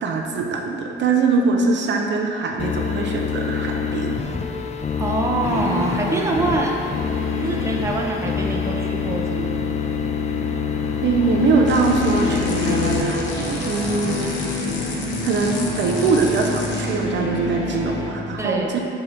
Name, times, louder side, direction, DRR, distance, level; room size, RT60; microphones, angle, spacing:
voice 1, 0.0-4.2 11.0-14.6 15.2-18.8, right 4 dB, 65° right, 1 dB, 0.6 m, -22 dB
sound 1, 2.6-13.0, left 6 dB, 35° left, 0.4 m, -26 dB
voice 2, 5.0-6.8 7.4-9.7 18.4-18.8, right 2 dB, 15° right, -1 dB, 0.7 m, -25 dB
sound 2, 5.4-18.1, left 2 dB, 90° left, 1.0 m, -29 dB
sound 3, 11.6-17.0, left 3 dB, 65° left, 1.0 m, -33 dB
6.7 x 2.9 x 5.1 m, 2.6 s
cardioid pair, 90°, 20 cm